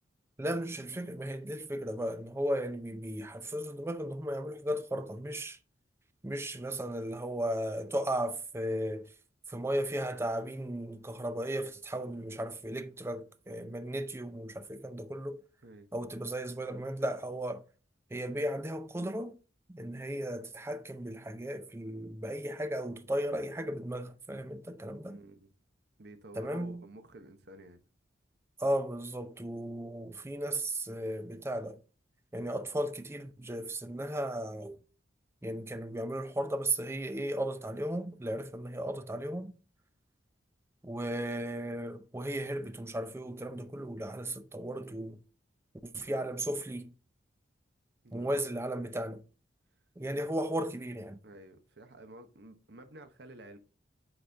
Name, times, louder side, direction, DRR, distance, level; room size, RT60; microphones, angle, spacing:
voice 1, 0.4-5.6 6.2-9.1 9.5-15.4 15.9-17.6 18.1-19.4 19.7-25.2 26.3-26.8 28.6-31.8 32.3-34.8 35.4-39.5 40.8-45.2 45.8-46.9 48.1-49.2 50.0-51.2, right 1 dB, 15° right, 0.5 m, -35 dB
voice 2, 13.5-13.8 15.6-15.9 25.1-25.5 26.0-27.8 48.0-48.5 51.2-53.6, right 1 dB, 60° right, 0.9 m, -51 dB
8.0 x 4.2 x 3.4 m
head